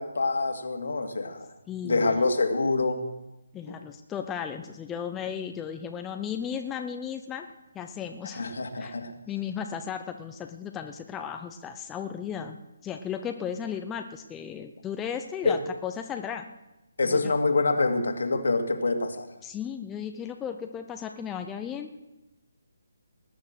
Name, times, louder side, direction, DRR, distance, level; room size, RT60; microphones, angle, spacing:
voice 1, 0.0-1.5 1.8-3.0 3.7-3.8 8.3-9.1 15.4-15.6 17.0-19.3, left 3 dB, 65° left, 5 dB, 2.3 m, -26 dB
voice 2, 1.7-2.2 3.5-7.5 7.7-8.9 9.3-16.4 17.0-17.3 19.4-22.0, left 8 dB, 15° left, 5 dB, 0.7 m, -35 dB
19.5 x 9.4 x 6.3 m, 0.97 s
figure-of-eight pair, 145°, 0 cm